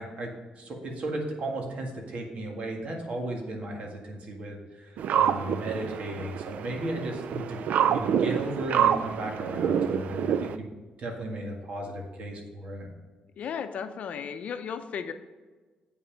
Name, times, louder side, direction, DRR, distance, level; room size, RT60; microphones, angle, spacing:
voice 1, 0.0-7.6 7.9-10.7 11.0-12.9, right 1 dB, 55° right, 1 dB, 1.8 m, -35 dB
sound 1, 5.0-10.6, right 8 dB, 75° right, 0.4 m, -27 dB
voice 2, 13.4-15.1, left 7 dB, 65° left, 9 dB, 0.6 m, -35 dB
8.1 x 5.6 x 5.1 m, 1.3 s
cardioid pair, 110°, 3 cm